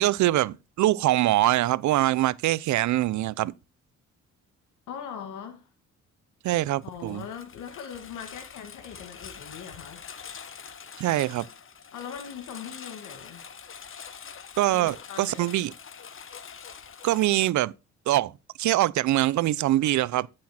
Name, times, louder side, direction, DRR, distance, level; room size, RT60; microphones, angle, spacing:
voice 1, 0.0-3.5 6.4-7.2 11.0-11.5 14.6-15.7 17.0-17.7 18.1-18.3 18.6-20.3, right 15 dB, 70° right, 0.6 m, -23 dB
voice 2, 4.9-5.7 6.8-10.1 11.9-13.4 14.7-15.5, left 7 dB, 80° left, 1.7 m, -40 dB
Engine, 6.8-17.5, left 7 dB, 45° left, 1.2 m, -45 dB
10.5 x 6.3 x 4.3 m
cardioid pair, 90°, 30 cm